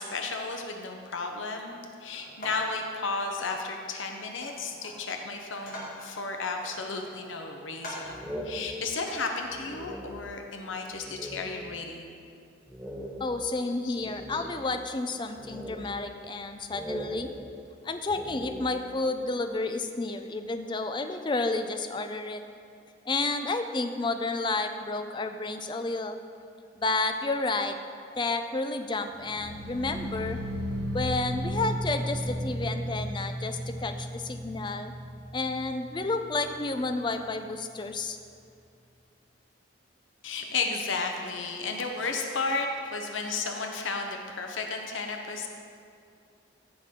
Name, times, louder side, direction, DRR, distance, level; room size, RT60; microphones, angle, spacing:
voice 1, 0.0-12.1 13.7-14.5 40.2-45.5, left 3 dB, 80° left, 3 dB, 0.9 m, -33 dB
sound 1, 2.1-2.8 3.4-3.6 4.4-5.0 5.4-6.1 6.6-7.3 7.8-8.2 9.0-9.2, left 1 dB, 45° left, 2.2 m, -42 dB
sound 2, 8.1-10.5 10.9-11.8 12.1-12.2 12.7-14.9 15.4-16.4 16.7-19.1, equal, 5° right, 0.9 m, -41 dB
voice 2, 13.2-17.3 17.8-22.4 23.1-26.2 26.8-27.7 28.2-30.4 30.9-34.9 35.3-38.2, left 3 dB, 25° left, 7 dB, 0.4 m, -31 dB
sound 3, 29.1-36.2 36.5-37.0 37.3-37.4, equal, 80° right, 2.2 m, -34 dB
14.5 x 6.0 x 3.7 m, 2.4 s
head